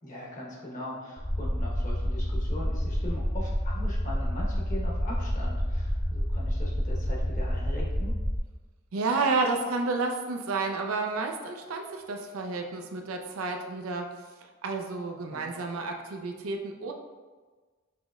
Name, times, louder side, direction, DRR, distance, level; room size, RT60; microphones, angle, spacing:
voice 1, 0.0-8.1 15.3-15.4, left 1 dB, 40° left, -4 dB, 1.0 m, -40 dB
sound 1, 1.2-8.4, equal, 15° left, 0.5 m, -29 dB
voice 2, 8.9-14.1 14.6-16.9, right 3 dB, 85° right, 3 dB, 0.5 m, -30 dB
5.9 x 3.0 x 2.3 m, 1.4 s
head